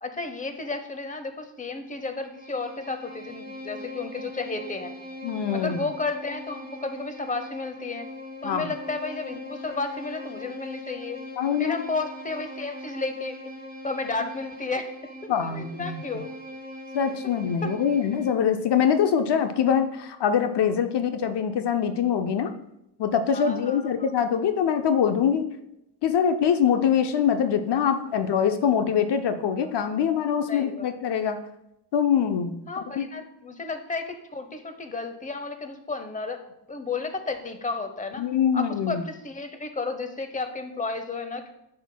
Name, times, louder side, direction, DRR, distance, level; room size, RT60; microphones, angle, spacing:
voice 1, 0.0-5.0 5.5-8.1 8.4-11.2 11.6-13.5 13.8-14.9 15.2-16.3 17.6-17.7 23.3-24.1 30.5-30.9 32.7-36.4 36.7-38.2 38.5-41.6, left 3 dB, 20° left, 7 dB, 0.8 m, -32 dB
Bowed string instrument, 1.8-18.5, left 1 dB, 25° right, 1.4 m, -41 dB
voice 2, 5.2-5.8 8.4-8.7 11.4-11.8 15.3-16.0 16.9-22.5 23.0-25.5 26.0-31.4 31.9-32.7 33.0-33.1 38.2-39.0, left 8 dB, 90° left, 8 dB, 0.6 m, -24 dB
8.0 x 6.5 x 2.2 m, 0.83 s
cardioid pair, 75°, 40 cm